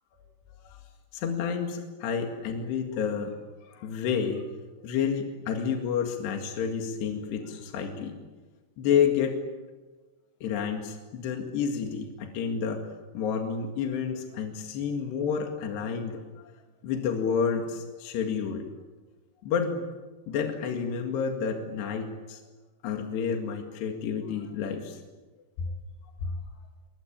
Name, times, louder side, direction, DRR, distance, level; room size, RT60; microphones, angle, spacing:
voice 1, 1.1-3.4 3.7-4.5 4.8-8.2 8.8-9.4 10.4-12.8 13.1-16.2 16.8-18.7 19.4-19.8 20.3-22.4 22.8-25.0 25.6-25.7 26.2-26.4, left 7 dB, 70° left, 3 dB, 4.2 m, -29 dB
28.0 x 23.5 x 8.8 m, 1.3 s
omnidirectional pair, 5.0 m